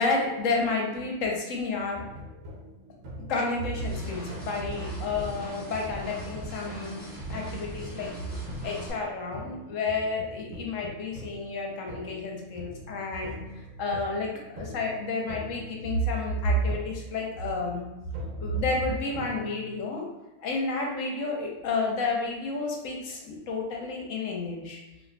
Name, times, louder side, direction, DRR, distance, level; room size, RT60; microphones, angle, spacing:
voice 1, 0.0-2.0 3.2-7.0 7.3-8.1 8.6-17.9 18.4-20.0 20.4-24.8, left 2 dB, 80° left, 0 dB, 1.1 m, -30 dB
sound 1, 1.9-19.8, equal, 85° right, 1.1 m, -44 dB
sound 2, 3.8-8.9, right 1 dB, 10° right, 0.8 m, -40 dB
3.9 x 2.7 x 2.2 m, 1.0 s
omnidirectional pair, 1.3 m